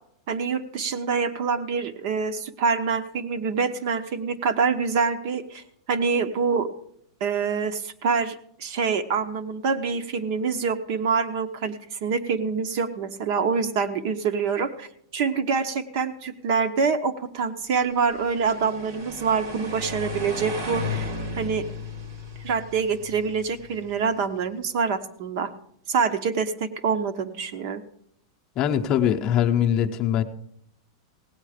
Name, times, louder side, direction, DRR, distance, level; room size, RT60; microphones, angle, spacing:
voice 1, 0.3-6.7 7.2-21.6 22.4-25.5 25.9-27.8, right 5 dB, 50° right, 9 dB, 0.9 m, -26 dB
sound 1, 17.9-24.1, left 2 dB, 80° right, 2.6 m, -35 dB
voice 2, 28.6-30.2, left 9 dB, 30° left, 4 dB, 0.7 m, -22 dB
17.0 x 8.6 x 5.0 m, 0.70 s
supercardioid pair, 165°, 2 cm